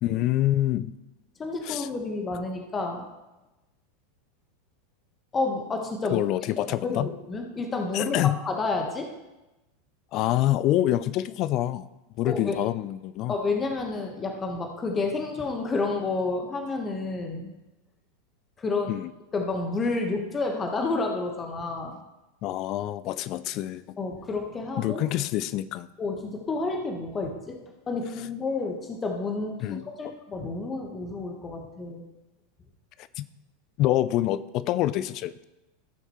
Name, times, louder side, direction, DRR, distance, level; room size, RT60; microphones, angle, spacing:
voice 1, 0.0-0.9 1.6-1.9 6.1-7.1 7.9-8.4 10.1-11.9 12.2-13.4 18.9-19.1 22.4-23.8 24.8-25.9 29.6-30.1 33.2-33.3 33.8-35.4, left 14 dB, 45° left, 16 dB, 0.5 m, -26 dB
voice 2, 1.4-3.1 5.3-9.1 12.2-12.6 13.3-17.5 18.6-18.9 19.3-22.0 24.0-25.0 26.0-27.6 27.9-32.0, left 3 dB, 25° left, 3 dB, 1.4 m, -30 dB
16.5 x 6.6 x 3.2 m, 1.0 s
figure-of-eight pair, 85°, 0 cm